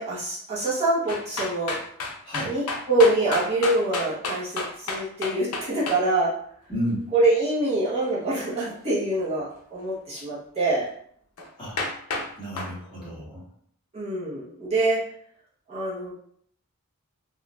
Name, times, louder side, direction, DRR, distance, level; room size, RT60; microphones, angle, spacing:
voice 1, 0.0-1.8 2.4-6.4 7.1-10.9 13.9-15.1 15.7-16.1, right 2 dB, 30° right, -8 dB, 0.9 m, -25 dB
sound 1, 1.1-6.0 11.4-11.5 11.8-12.3 12.6-12.7, left 3 dB, 85° left, 0.6 m, -30 dB
voice 2, 2.2-2.6 6.7-7.1 11.6-11.8 12.4-13.5, equal, 25° left, -9 dB, 1.5 m, -32 dB
3.9 x 2.4 x 2.3 m, 0.65 s
head